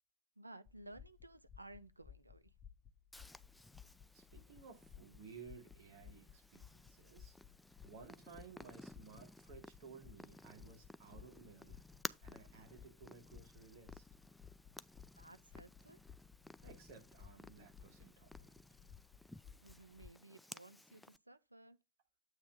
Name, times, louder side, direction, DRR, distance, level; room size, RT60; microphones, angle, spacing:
voice 1, 0.4-2.5 15.2-16.0 19.6-21.8, right 2 dB, 85° right, 0.6 m, -57 dB
sound 1, 0.6-20.1, left 8 dB, 30° left, 0.8 m, -59 dB
Purr, 3.1-21.2, left 1 dB, 5° left, 0.3 m, -56 dB
voice 2, 4.1-7.3 7.8-11.8 12.2-14.0 16.6-18.6, right 5 dB, 50° right, 2.3 m, -57 dB
8.0 x 3.2 x 5.0 m
figure-of-eight pair, 90°, 0 cm